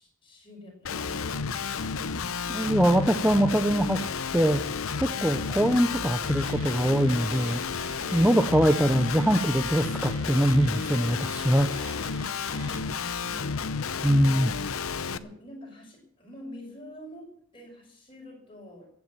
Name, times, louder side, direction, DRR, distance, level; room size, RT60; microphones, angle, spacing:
voice 1, 0.0-1.5 15.0-18.9, left 1 dB, 25° left, 0 dB, 6.0 m, -47 dB
Guitar, 0.8-15.2, left 5 dB, 90° left, 0.8 m, -31 dB
voice 2, 2.5-4.6 5.0-7.6 8.1-11.9 14.0-14.5, equal, 5° right, 7 dB, 0.7 m, -23 dB
Mechanisms, 6.2-12.8, right 6 dB, 85° right, 2.6 m, -48 dB
15.0 x 9.7 x 8.6 m, 0.70 s
head